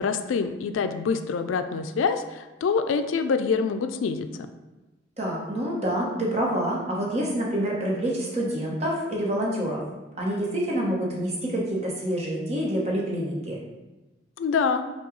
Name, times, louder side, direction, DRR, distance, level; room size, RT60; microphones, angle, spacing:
voice 1, 0.0-4.5 14.4-14.9, left 5 dB, 80° left, 8 dB, 0.3 m, -26 dB
voice 2, 5.2-9.8 10.2-13.6, right 1 dB, 35° right, -3 dB, 0.9 m, -27 dB
5.5 x 2.3 x 3.8 m, 1.1 s
head